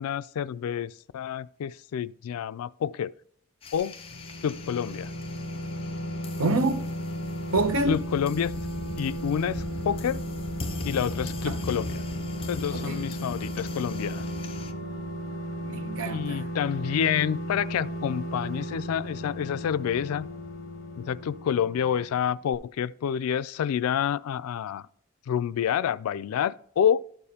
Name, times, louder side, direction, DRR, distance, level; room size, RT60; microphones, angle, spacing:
voice 1, 0.0-3.1 3.7-3.9 4.4-5.1 7.9-8.6 9.0-10.2 10.8-12.0 12.5-14.2 16.0-20.3 21.0-24.9 25.3-27.0, left 8 dB, 90° left, 0.3 m, -28 dB
sound 1, 3.6-14.7, left 2 dB, 25° left, 0.7 m, -40 dB
sound 2, 3.9-22.2 22.5-22.6, equal, 60° left, 0.9 m, -35 dB
voice 2, 6.4-6.9 7.5-8.0 11.5-11.6 12.7-13.0 15.7-16.5, right 2 dB, 75° right, 0.7 m, -27 dB
12.0 x 6.8 x 2.8 m
head